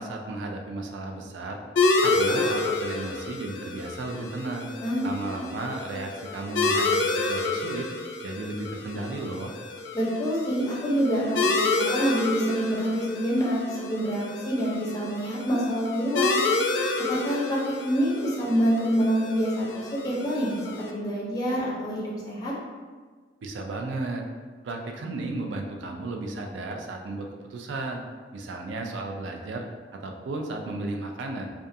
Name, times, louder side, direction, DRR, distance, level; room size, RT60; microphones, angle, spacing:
voice 1, 0.0-1.6 2.0-4.7 5.0-7.9 8.2-9.5 23.4-24.2 24.6-28.0 28.3-29.6 29.9-31.5, right 2 dB, 80° right, 2 dB, 0.4 m, -34 dB
sound 1, 1.8-20.9, left 3 dB, 80° left, 0.3 m, -29 dB
voice 2, 9.9-16.4 17.1-17.6 17.8-20.6 20.9-22.5, equal, 20° left, -5 dB, 0.6 m, -26 dB
2.3 x 2.3 x 2.6 m, 1.5 s
head